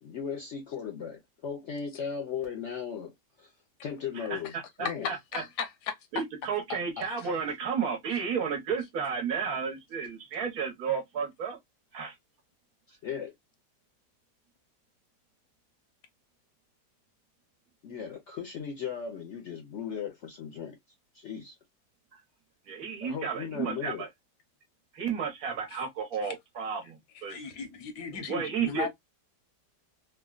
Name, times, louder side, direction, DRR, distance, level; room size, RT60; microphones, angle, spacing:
voice 1, 0.0-3.1 3.4-3.5 3.8-4.5 4.8-5.1 12.9-13.3 17.8-20.8 21.1-21.5 23.0-24.0, left 7 dB, 60° left, 0.8 m, -37 dB
voice 2, 4.2-5.4 6.1-11.6 11.9-12.1 22.1-22.2 22.7-24.1 24.9-27.4 28.1-28.9, right 6 dB, 65° right, 1.3 m, -33 dB
voice 3, 5.0-5.7 7.0-7.1 27.3-28.9, left 6 dB, 80° left, 1.3 m, -36 dB
3.5 x 2.1 x 2.3 m
omnidirectional pair, 1.8 m